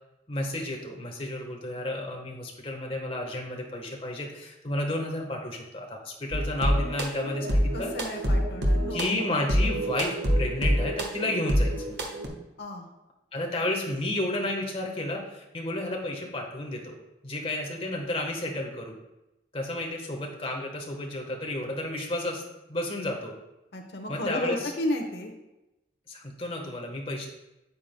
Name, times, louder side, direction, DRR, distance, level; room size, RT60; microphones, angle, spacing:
voice 1, 0.3-7.9 8.9-12.0 13.3-17.0 17.2-19.0 19.5-22.4 22.7-23.3 24.1-24.7 26.1-27.3, left 1 dB, 30° left, 1 dB, 1.2 m, -32 dB
sound 1, 6.3-12.3, equal, 85° right, 1.3 m, -26 dB
voice 2, 7.7-9.3 12.6-12.9 23.7-25.3, left 1 dB, 70° left, 3 dB, 0.9 m, -33 dB
8.9 x 8.4 x 2.2 m, 0.96 s
head